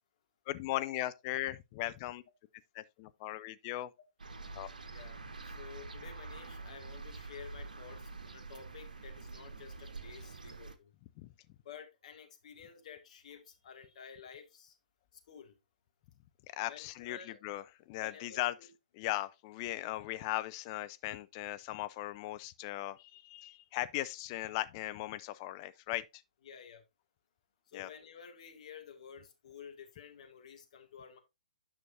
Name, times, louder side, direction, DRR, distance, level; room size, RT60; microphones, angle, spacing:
voice 1, 0.5-2.2 2.7-3.9 4.5-4.7 11.2-11.3 16.5-18.5 18.9-26.2 27.7-27.9, left 16 dB, 35° left, 0.6 m, -38 dB
sound 1, 4.2-10.8, right 3 dB, 70° right, 1.3 m, -46 dB
voice 2, 4.9-10.9 11.6-14.8 15.3-15.6 16.7-17.4 18.0-18.7 26.5-26.8 27.7-31.2, left 7 dB, 50° left, 2.2 m, -52 dB
9.6 x 6.1 x 2.7 m
figure-of-eight pair, 125°, 5 cm